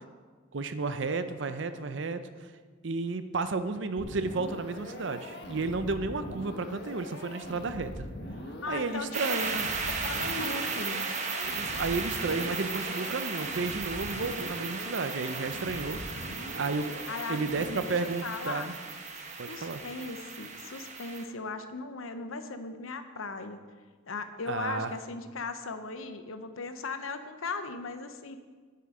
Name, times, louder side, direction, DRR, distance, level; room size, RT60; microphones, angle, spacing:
voice 1, 0.5-2.5 2.8-8.1 8.7-9.7 11.4-16.9 17.3-18.7 19.4-19.8 24.5-24.9, right 3 dB, 60° right, 10 dB, 0.6 m, -32 dB
sound 1, 4.0-18.0, left 1 dB, 55° left, 1.3 m, -42 dB
voice 2, 8.6-9.4 10.0-11.1 17.1-18.0 18.2-18.7 19.5-23.6 24.1-28.4, left 4 dB, 80° left, 9 dB, 0.8 m, -38 dB
sound 2, 9.1-21.2, right 4 dB, 35° right, 1.0 m, -36 dB
9.5 x 9.4 x 5.0 m, 1.5 s
head